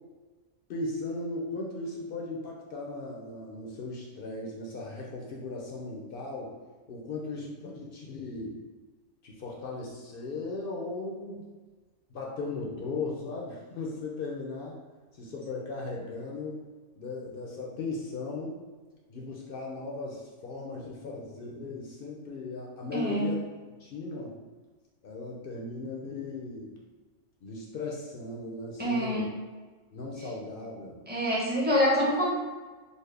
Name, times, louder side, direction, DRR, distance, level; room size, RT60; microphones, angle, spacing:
voice 1, 0.7-6.5 6.9-8.6 9.2-11.4 12.1-14.8 15.1-16.6 17.0-18.6 19.1-23.4 23.8-24.4 25.0-26.7 27.4-29.3 29.9-31.0, left 3 dB, 60° left, -2 dB, 0.6 m, -37 dB
voice 2, 22.9-23.4 28.8-29.3 31.1-32.3, equal, 10° right, -6 dB, 0.6 m, -26 dB
4.1 x 2.0 x 3.3 m, 1.4 s
omnidirectional pair, 1.4 m